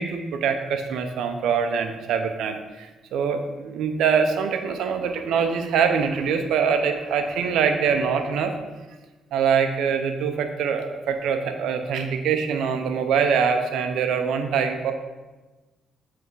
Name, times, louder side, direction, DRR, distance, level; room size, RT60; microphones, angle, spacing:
voice 1, 0.0-8.5 9.3-14.9, right 6 dB, 80° right, 6 dB, 0.6 m, -24 dB
8.0 x 3.5 x 4.6 m, 1.2 s
cardioid pair, 90°, 0 cm